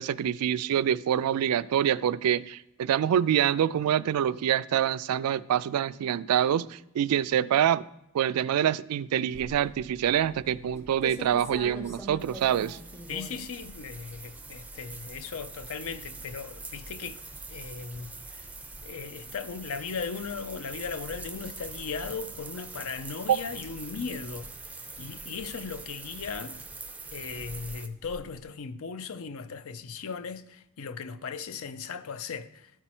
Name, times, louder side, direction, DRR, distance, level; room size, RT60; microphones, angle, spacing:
voice 1, 0.0-7.8 8.1-12.8 23.3-23.4, right 9 dB, 80° right, 0.3 m, -26 dB
sound 1, 9.3-28.4, equal, 10° left, 0.8 m, -47 dB
sound 2, 12.2-27.9, right 3 dB, 5° right, 0.5 m, -44 dB
voice 2, 13.1-17.2 17.5-18.5 18.8-24.5 25.0-26.6 27.1-32.7, left 5 dB, 65° left, 0.5 m, -37 dB
13.0 x 4.4 x 4.3 m
head